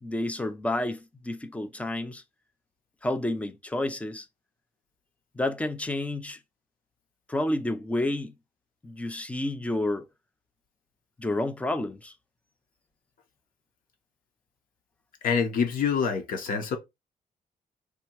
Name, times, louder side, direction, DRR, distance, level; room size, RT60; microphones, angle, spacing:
voice 1, 0.0-2.2 3.0-4.3 5.3-6.4 7.3-8.3 8.8-10.0 11.2-12.1, left 1 dB, 10° left, 0.5 m, -30 dB
voice 2, 15.2-16.8, left 6 dB, 80° left, 1.2 m, -26 dB
3.4 x 2.9 x 4.5 m
wide cardioid pair, 160°, 14 cm